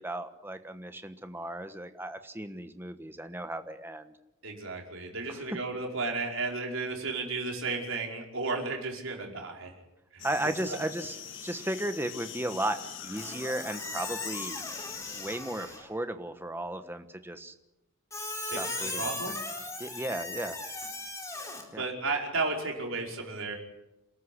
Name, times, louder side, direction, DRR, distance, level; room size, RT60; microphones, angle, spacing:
voice 1, 0.0-4.1 5.3-5.4 10.2-11.2 11.4-14.6 15.1-17.5 18.4-19.3 19.8-20.6 21.7-21.8, right 1 dB, 10° right, 8 dB, 1.2 m, -35 dB
voice 2, 4.4-9.7 10.1-10.8 18.5-19.4 21.8-23.6, right 3 dB, 65° right, 1 dB, 5.2 m, -34 dB
sound 1, 10.2-15.4, left 8 dB, 55° left, 2.5 m, -43 dB
Squeak, 13.2-15.9 18.1-21.6, left 2 dB, 15° left, 4.0 m, -38 dB
28.0 x 13.5 x 10.0 m, 0.93 s
head